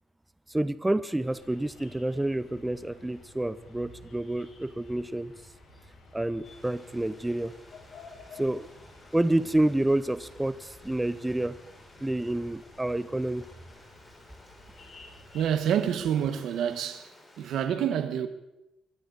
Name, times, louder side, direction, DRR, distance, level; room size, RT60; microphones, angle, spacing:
voice 1, 0.5-5.3 6.1-7.5 8.4-8.7 9.1-11.6 12.0-13.5, right 1 dB, 10° right, 0.6 m, -28 dB
sound 1, 1.2-15.6, left 3 dB, 65° left, 6.0 m, -53 dB
Stream, 6.4-17.6, left 1 dB, 20° left, 6.5 m, -55 dB
voice 2, 15.3-17.1 17.4-18.3, right 9 dB, 75° right, 1.4 m, -27 dB
24.0 x 14.0 x 4.1 m
cardioid pair, 90°, 0 cm